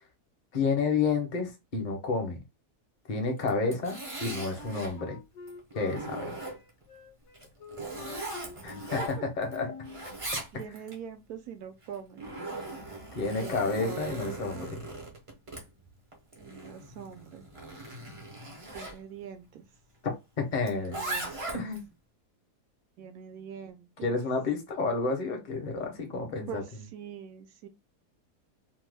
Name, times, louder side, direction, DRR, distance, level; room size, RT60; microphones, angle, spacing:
voice 1, 0.5-2.4 3.1-4.0 4.2-5.2 5.7-6.4 8.6-9.0 9.4-9.7 13.1-14.8 20.4-21.0 21.5-21.8 24.0-26.6, left 4 dB, 45° left, 0.6 m, -30 dB
Zipper (clothing), 3.4-5.0 5.5-6.8 7.3-9.6 9.8-11.0 11.8-19.0 20.6-21.8, right 2 dB, 35° right, 0.5 m, -39 dB
Wind instrument woodwind instrument, 4.2-10.1, left 5 dB, 70° left, 0.9 m, -46 dB
voice 2, 10.5-12.4 13.4-14.7 16.4-17.5 18.7-19.7 20.6-21.6 23.0-24.2 26.5-26.6 26.9-27.7, right 8 dB, 70° right, 1.0 m, -43 dB
2.8 x 2.2 x 3.3 m
omnidirectional pair, 1.7 m